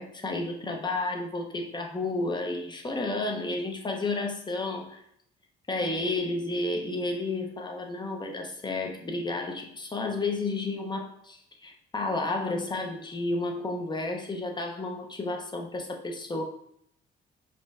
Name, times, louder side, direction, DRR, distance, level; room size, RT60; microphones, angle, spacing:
voice 1, 0.0-5.0 5.7-16.4, left 2 dB, 20° left, 2 dB, 0.8 m, -31 dB
5.0 x 2.2 x 3.5 m, 0.71 s
cardioid pair, 90°, 20 cm